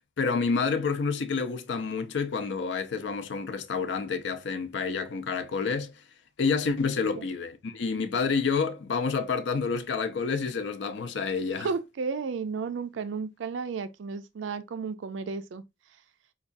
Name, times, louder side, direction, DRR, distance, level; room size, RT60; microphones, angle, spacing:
voice 1, 0.2-5.9 6.4-11.7, left 5 dB, 70° left, 0.5 m, -29 dB
voice 2, 11.5-15.6, right 5 dB, 85° right, 0.4 m, -33 dB
4.6 x 2.3 x 2.5 m
head